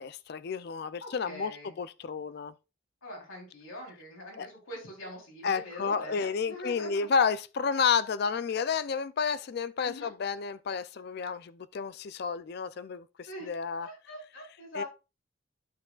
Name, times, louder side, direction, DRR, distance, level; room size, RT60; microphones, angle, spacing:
voice 1, 0.0-2.5 4.4-4.5 5.4-13.9 14.7-14.8, left 6 dB, 50° left, 0.3 m, -31 dB
voice 2, 1.0-1.7 3.0-6.9 9.8-10.1 13.2-13.5 13.8-14.9, left 1 dB, 85° left, 3.4 m, -43 dB
11.0 x 6.1 x 2.3 m
head